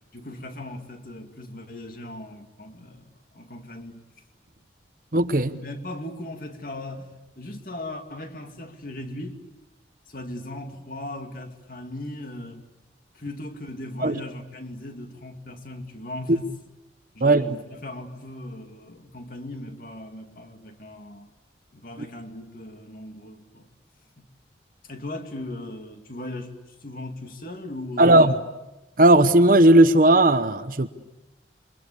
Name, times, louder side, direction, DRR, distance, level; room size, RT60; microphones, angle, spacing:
voice 1, 0.1-4.0 5.5-7.1 7.4-9.4 10.1-12.6 13.1-16.6 17.1-21.3 21.7-23.7 24.2-24.3 24.9-28.4, left 1 dB, 50° left, 2.4 m, -38 dB
voice 2, 5.1-5.6 14.0-14.2 17.2-17.5 28.0-28.4 29.0-30.9, right 1 dB, 45° right, 0.9 m, -16 dB
28.5 x 24.0 x 8.5 m
head